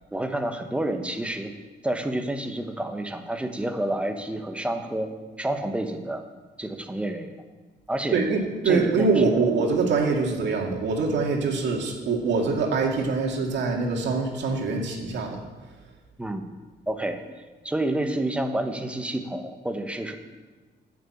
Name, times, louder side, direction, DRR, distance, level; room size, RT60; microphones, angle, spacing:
voice 1, 0.1-1.5 1.8-5.1 5.4-6.2 6.6-7.3 7.9-8.2 8.6-9.4 16.2-16.4 16.9-17.2 17.6-20.1, right 1 dB, 5° right, 5 dB, 1.1 m, -29 dB
voice 2, 8.1-15.4, right 4 dB, 80° right, 0 dB, 2.2 m, -24 dB
10.5 x 7.1 x 8.7 m, 1.3 s
cardioid pair, 125°, 18 cm